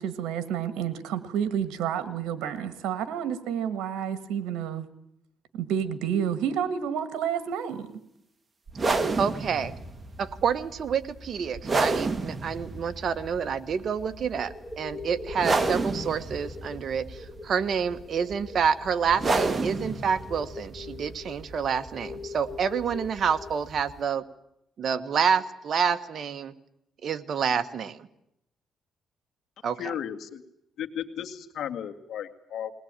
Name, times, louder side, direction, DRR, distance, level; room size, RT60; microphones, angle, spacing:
voice 1, 0.0-4.9 5.5-7.9, right 8 dB, 90° right, 12 dB, 1.6 m, -30 dB
sound 1, 8.7-24.0, right 3 dB, 30° right, 1.9 m, -31 dB
voice 2, 9.2-9.7 10.2-24.2 24.8-26.5 27.0-28.1 29.6-29.9, right 6 dB, 55° right, 10 dB, 1.4 m, -28 dB
sound 2, 13.8-14.0 14.3-23.6, left 4 dB, 10° left, 1.9 m, -43 dB
voice 3, 29.8-30.4 30.8-32.7, left 9 dB, 70° left, 6 dB, 2.1 m, -34 dB
21.0 x 19.0 x 9.0 m, 0.78 s
cardioid pair, 90°, 0 cm